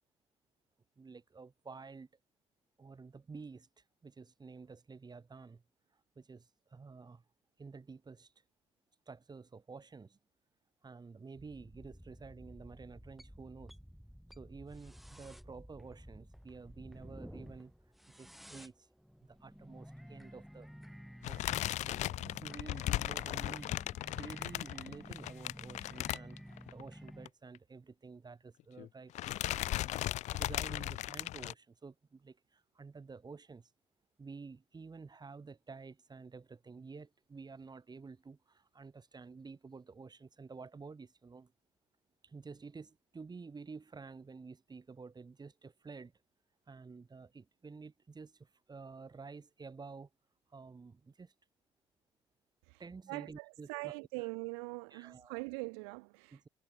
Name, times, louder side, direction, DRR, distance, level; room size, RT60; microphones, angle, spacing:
voice 1, 1.0-2.1 2.8-5.6 6.2-7.2 7.6-8.3 9.1-10.2 10.8-13.8 14.4-17.7 18.2-18.9 19.2-20.7 21.3-21.6 22.2-23.8 24.0-26.4 26.7-30.0 30.3-33.7 34.2-41.5 42.2-46.1 46.7-50.1 50.5-51.3 52.8-53.9 54.2-54.3 54.9-55.4 56.3-56.5, right 4 dB, 30° right, 5.2 m, -51 dB
sound 1, 11.3-27.3, equal, ahead, 6.3 m, -52 dB
sound 2, 21.2-26.8 27.1-27.3 27.5-27.6 28.6-28.9 29.2-31.5, left 15 dB, 55° left, 0.5 m, -37 dB
voice 2, 53.1-56.5, right 37 dB, 75° right, 0.8 m, -42 dB
hypercardioid pair, 50°, 14 cm